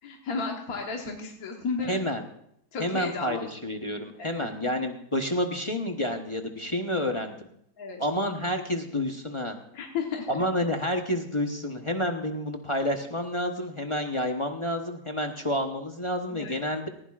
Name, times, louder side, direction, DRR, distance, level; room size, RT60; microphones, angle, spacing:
voice 1, 0.0-2.0 2.7-3.6 4.2-4.5 7.8-8.0 9.7-10.3 16.3-16.6, left 4 dB, 60° left, 1 dB, 1.7 m, -33 dB
voice 2, 1.9-2.2 2.8-7.5 8.0-9.6 10.3-16.9, left 1 dB, 25° left, 4 dB, 0.7 m, -29 dB
19.0 x 15.0 x 2.4 m, 0.73 s
omnidirectional pair, 1.8 m